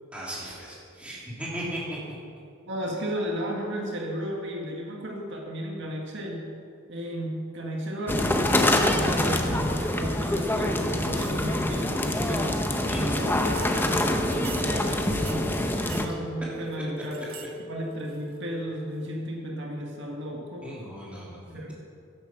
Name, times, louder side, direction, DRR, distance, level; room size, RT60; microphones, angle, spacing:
voice 1, 0.1-2.0 12.9-13.1 15.6-15.7 20.6-21.7, equal, 5° right, -6 dB, 3.0 m, -37 dB
voice 2, 2.7-6.5 6.9-17.3 17.7-20.7 21.5-21.7, equal, 60° right, 0 dB, 1.9 m, -34 dB
sound 1, 8.1-16.1, left 1 dB, 10° left, 0.8 m, -25 dB
sound 2, 11.1-11.6 12.6-13.9 14.3-14.7 15.2-16.1 16.5-17.5 17.8-18.6 19.0-19.1, right 7 dB, 80° right, 1.3 m, -45 dB
sound 3, 13.4-19.1, left 1 dB, 60° left, 0.6 m, -39 dB
11.0 x 10.5 x 7.2 m, 2.3 s
head